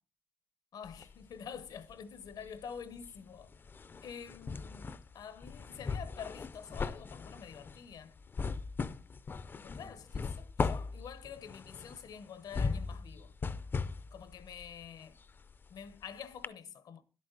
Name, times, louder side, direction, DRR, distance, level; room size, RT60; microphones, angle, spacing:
voice 1, 0.7-3.5 4.0-8.2 9.6-13.3 14.1-15.2 15.7-17.0, left 7 dB, 85° left, 0.9 m, -47 dB
sound 1, 0.8-2.0 2.3-16.0 16.4-16.5, left 4 dB, 30° left, 0.4 m, -39 dB
11.0 x 8.5 x 3.8 m
wide cardioid pair, 155°, 7 cm